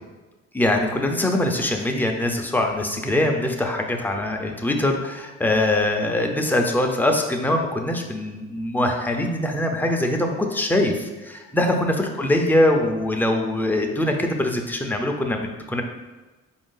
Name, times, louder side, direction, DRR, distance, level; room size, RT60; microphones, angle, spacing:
voice 1, 0.5-15.8, left 1 dB, 5° left, 2 dB, 0.5 m, -23 dB
4.6 x 2.6 x 3.8 m, 1.2 s
cardioid pair, 90°, 30 cm